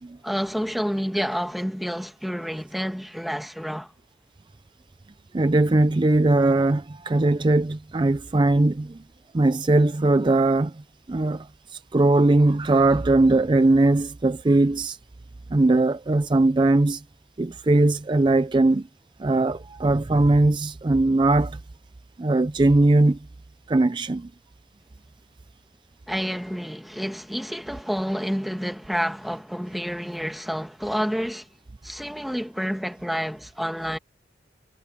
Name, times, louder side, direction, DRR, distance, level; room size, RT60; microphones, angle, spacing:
voice 1, 0.2-3.9 26.1-31.5 31.8-34.0, equal, ahead, 1.4 m, -29 dB
voice 2, 5.3-9.0 9.3-10.8 11.1-15.0 15.5-17.0 17.4-18.9 19.2-21.6 22.2-23.2 23.7-24.3, right 2 dB, 25° right, 0.4 m, -20 dB
head